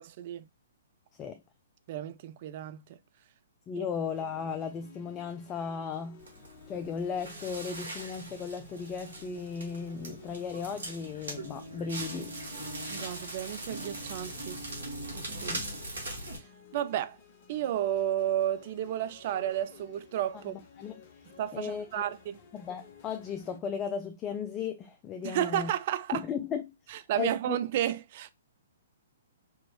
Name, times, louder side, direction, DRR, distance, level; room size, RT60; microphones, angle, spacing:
voice 1, 0.2-0.5 1.9-2.8 12.9-14.6 15.1-15.6 16.7-17.2 17.5-20.5 21.4-22.4 25.2-26.2 26.9-28.3, right 11 dB, 45° right, 0.4 m, -32 dB
voice 2, 3.7-6.2 6.7-12.3 15.5-15.6 20.3-20.4 20.8-20.9 21.5-22.0 22.5-25.7 26.1-26.7 27.2-27.6, left 6 dB, 20° left, 0.4 m, -36 dB
sound 1, 4.0-23.6, left 6 dB, 45° left, 0.8 m, -55 dB
Crackle, 6.2-16.4, right 1 dB, 75° right, 1.6 m, -41 dB
4.7 x 2.6 x 2.8 m
figure-of-eight pair, 120°, 0 cm